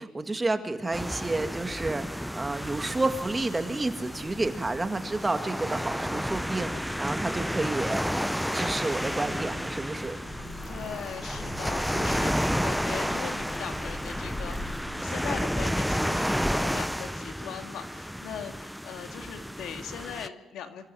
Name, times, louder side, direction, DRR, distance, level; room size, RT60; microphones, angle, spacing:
voice 1, 0.0-8.1 8.5-10.2, right 2 dB, 20° right, 7 dB, 2.0 m, -30 dB
sound 1, 0.9-20.3, equal, ahead, 0.6 m, -31 dB
sound 2, 2.6-14.8, left 1 dB, 40° left, 6.7 m, -43 dB
voice 2, 10.7-20.9, left 8 dB, 80° left, 6 dB, 2.1 m, -40 dB
25.5 x 15.0 x 7.6 m, 1.2 s
cardioid pair, 90°, 0 cm